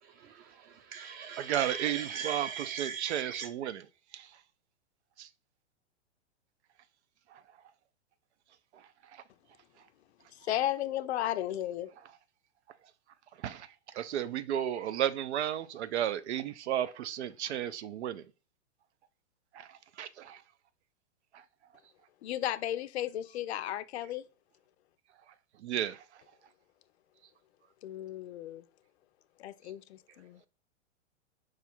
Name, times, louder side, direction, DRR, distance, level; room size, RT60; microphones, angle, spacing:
voice 1, 0.0-3.5, right 7 dB, 25° right, 0.7 m, -40 dB
voice 2, 1.4-3.8 4.1-4.3 5.2-5.3 7.3-7.4 13.4-13.7 13.9-18.2 19.5-19.7 20.0-20.4 25.6-26.0, right 11 dB, 70° right, 0.5 m, -33 dB
voice 3, 10.4-11.9 22.2-24.2 27.8-28.6 29.4-30.4, left 12 dB, 65° left, 0.5 m, -34 dB
4.9 x 2.4 x 4.2 m
hypercardioid pair, 125°, 35 cm